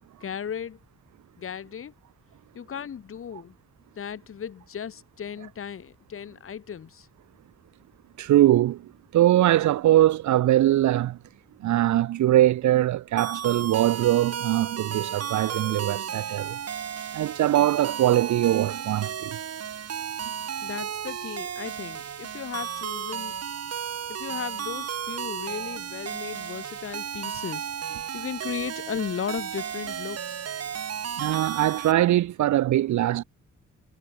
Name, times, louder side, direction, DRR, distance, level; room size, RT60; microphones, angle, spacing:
voice 1, 0.2-0.8 1.4-1.9 2.5-3.6 4.0-7.1 20.6-23.4 24.1-30.5, left 8 dB, 45° left, 2.0 m, -36 dB
voice 2, 8.2-11.2 11.6-16.6 17.1-19.4 31.2-33.2, right 13 dB, 75° right, 0.7 m, -22 dB
sound 1, 13.2-31.9, right 8 dB, 55° right, 4.0 m, -34 dB
cardioid pair, 135°, 29 cm